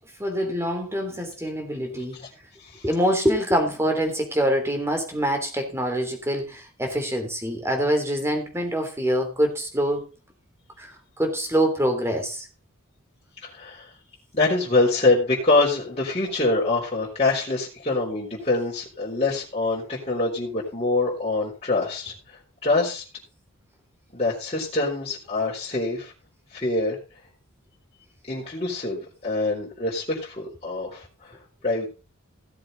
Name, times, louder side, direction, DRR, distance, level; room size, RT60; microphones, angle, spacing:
voice 1, 0.2-2.2 2.8-10.1 10.8-12.5, equal, 10° right, 3.2 m, -25 dB
voice 2, 13.4-13.9 14.3-23.0 24.1-26.1 26.5-27.0 28.3-31.4 31.6-31.9, left 2 dB, 30° left, 4.2 m, -25 dB
16.5 x 7.6 x 3.9 m
head